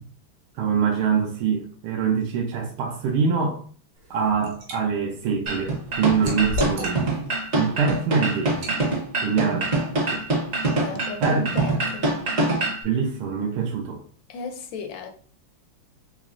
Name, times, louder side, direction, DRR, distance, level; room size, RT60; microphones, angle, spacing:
voice 1, 0.6-3.6 4.1-7.3 7.5-8.8 9.2-10.2 11.2-11.7 12.8-14.0, right 6 dB, 85° right, 1.5 m, -24 dB
Liquid, 4.0-4.8 5.2-7.3 7.7-7.9 8.5-8.8, left 1 dB, 65° right, 1.6 m, -33 dB
sound 1, 5.5-12.8, right 2 dB, 50° right, 0.9 m, -25 dB
voice 2, 10.8-12.2 14.3-15.1, left 5 dB, 75° left, 1.1 m, -36 dB
4.0 x 3.0 x 2.4 m
omnidirectional pair, 2.3 m